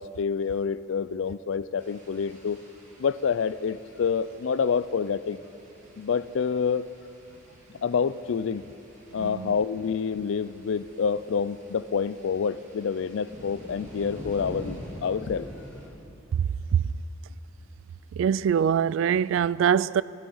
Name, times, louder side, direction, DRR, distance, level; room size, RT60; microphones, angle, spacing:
voice 1, 0.0-2.6 3.0-5.4 6.0-6.8 7.8-8.6 9.1-15.5, left 6 dB, 75° left, 0.4 m, -27 dB
sound 1, 1.8-15.9, equal, 40° right, 3.0 m, -46 dB
voice 2, 9.1-9.6 16.3-16.9 18.1-20.0, right 8 dB, 80° right, 0.3 m, -24 dB
18.0 x 12.5 x 5.5 m
head